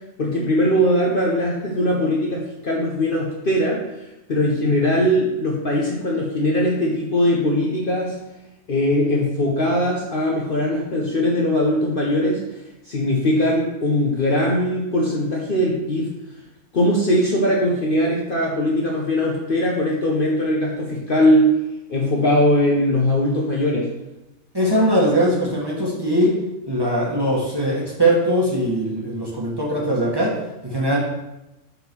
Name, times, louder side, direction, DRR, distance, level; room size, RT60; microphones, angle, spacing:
voice 1, 0.2-3.8 4.3-8.2 8.7-12.4 12.9-16.1 16.7-21.5 21.9-23.9, left 1 dB, 45° left, -3 dB, 1.0 m, -20 dB
voice 2, 24.5-26.3 26.7-31.0, right 1 dB, 15° right, -5 dB, 1.4 m, -21 dB
5.7 x 3.7 x 6.0 m, 0.94 s
omnidirectional pair, 1.5 m